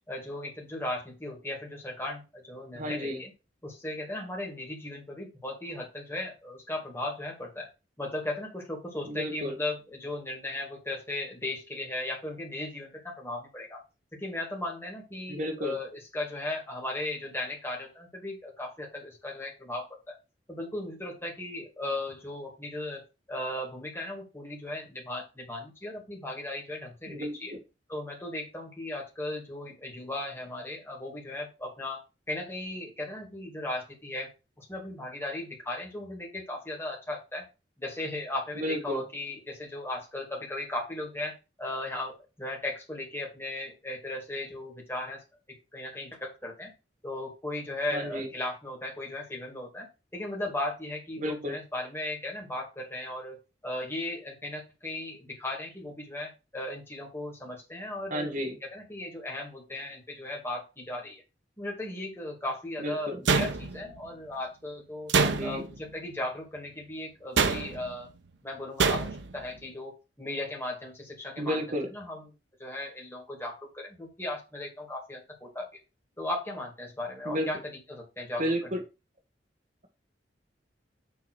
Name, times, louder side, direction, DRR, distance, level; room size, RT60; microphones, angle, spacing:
voice 1, 0.1-3.3 3.6-7.7 8.0-13.8 14.2-20.1 20.5-23.0 23.3-27.5 27.9-32.0 32.3-34.3 34.6-37.4 37.8-45.2 45.7-46.7 47.0-53.4 53.6-58.4 58.7-61.2 61.6-65.1 65.4-68.1 68.4-72.3 72.6-75.7 76.2-77.6 77.9-78.8, left 1 dB, 15° left, -1 dB, 2.4 m, -37 dB
voice 2, 2.7-3.2 9.1-9.5 15.3-15.8 27.1-27.6 38.6-39.0 47.9-48.3 51.2-51.6 58.1-58.6 62.8-63.2 65.2-65.7 71.4-71.9 77.3-77.5 78.4-78.8, equal, 45° right, 3 dB, 2.0 m, -32 dB
sound 1, 63.3-64.0 65.1-65.8 67.4-67.9 68.8-69.3, right 4 dB, 90° right, 0.8 m, -26 dB
6.9 x 3.8 x 6.3 m, 0.29 s
head